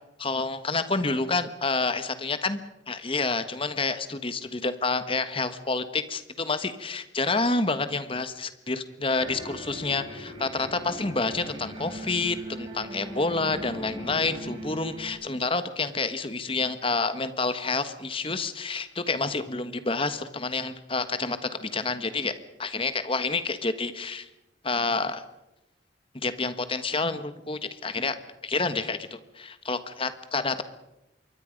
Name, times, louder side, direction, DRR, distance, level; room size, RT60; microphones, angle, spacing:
voice 1, 0.2-2.6 2.9-22.3 22.6-24.3 24.6-25.2 26.1-28.1 28.4-30.6, left 3 dB, 30° left, 11 dB, 1.4 m, -28 dB
sound 1, 9.1-15.1, right 1 dB, 30° right, 5.9 m, -39 dB
27.0 x 23.0 x 5.3 m, 0.92 s
head